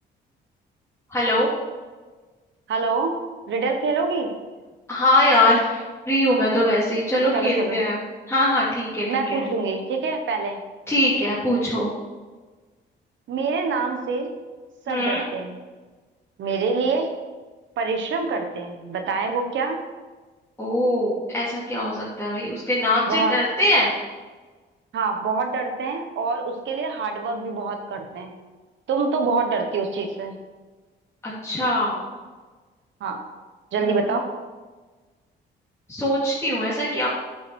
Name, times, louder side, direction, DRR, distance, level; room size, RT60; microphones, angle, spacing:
voice 1, 1.1-1.5 4.9-8.0 8.3-9.4 10.9-11.9 14.9-15.2 20.6-23.9 31.2-32.0 33.8-33.9 35.9-37.1, left 1 dB, 15° left, -9 dB, 2.8 m, -22 dB
voice 2, 2.7-3.1 3.5-4.3 7.3-7.8 9.1-10.6 13.3-14.3 14.9-15.6 16.4-17.1 17.8-19.8 23.1-23.4 24.9-28.3 28.9-30.4 33.0-33.2 33.7-34.3, right 4 dB, 70° right, 5 dB, 1.3 m, -25 dB
9.5 x 6.2 x 4.7 m, 1.3 s
cardioid pair, 90°, 20 cm